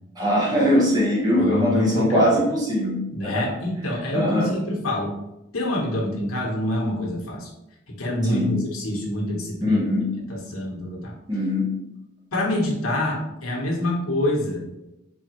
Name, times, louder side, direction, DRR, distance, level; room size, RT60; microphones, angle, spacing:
voice 1, 0.2-3.4 4.1-4.5 8.3-8.5 9.7-10.1 11.3-11.8, left 1 dB, 20° right, -4 dB, 1.0 m, -21 dB
voice 2, 1.4-2.3 3.1-5.2 5.5-7.5 7.9-9.8 10.3-11.1 12.3-14.7, left 1 dB, 90° left, -2 dB, 1.2 m, -26 dB
4.5 x 2.8 x 3.0 m, 0.91 s
head